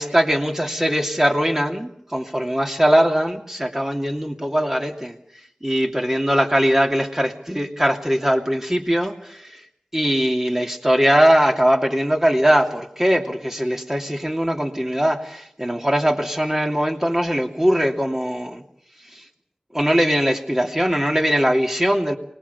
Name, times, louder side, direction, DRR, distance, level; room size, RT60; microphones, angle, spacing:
voice 1, 0.0-5.2 5.6-9.6 9.9-18.6 19.1-19.3 19.7-22.2, equal, 15° right, 2 dB, 2.8 m, -21 dB
25.0 x 20.0 x 6.9 m, 0.71 s
wide cardioid pair, 65°, 3 cm